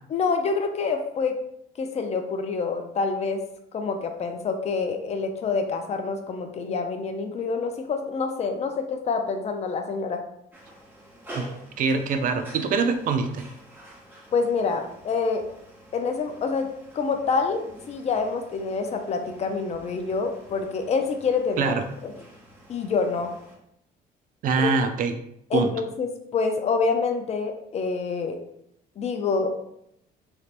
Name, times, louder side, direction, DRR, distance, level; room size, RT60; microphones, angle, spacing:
voice 1, 0.1-1.4 1.8-3.4 3.7-10.2 14.3-15.4 15.9-16.7 16.9-21.7 22.0-22.1 22.7-23.3 24.6-24.7 25.5-28.4 29.0-29.5, left 4 dB, 40° left, 6 dB, 0.5 m, -27 dB
sound 1, 10.5-23.6, right 1 dB, 10° right, 1.0 m, -48 dB
voice 2, 11.8-13.5 21.6-21.9 24.4-25.2 25.5-25.7, right 4 dB, 55° right, 7 dB, 0.4 m, -24 dB
3.2 x 2.8 x 2.5 m, 0.76 s
cardioid pair, 110°, 17 cm